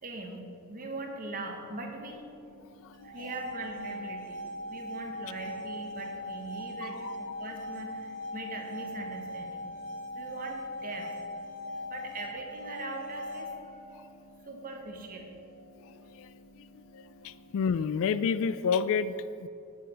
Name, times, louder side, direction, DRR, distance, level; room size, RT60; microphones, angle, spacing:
voice 1, 0.0-2.2 3.0-9.7 10.1-11.1 11.7-13.8 14.5-15.3 17.2-17.3, right 2 dB, 40° right, 2 dB, 1.2 m, -41 dB
sound 1, 1.9-17.8, equal, 90° left, 0.9 m, -56 dB
voice 2, 2.8-3.3 6.8-7.1 11.8-11.9 16.1-16.3 16.6-16.7 16.9-19.5, left 6 dB, 60° left, 15 dB, 0.3 m, -30 dB
sound 2, 2.9-13.9, left 1 dB, 55° right, 1.0 m, -40 dB
8.7 x 6.7 x 5.0 m, 2.6 s
head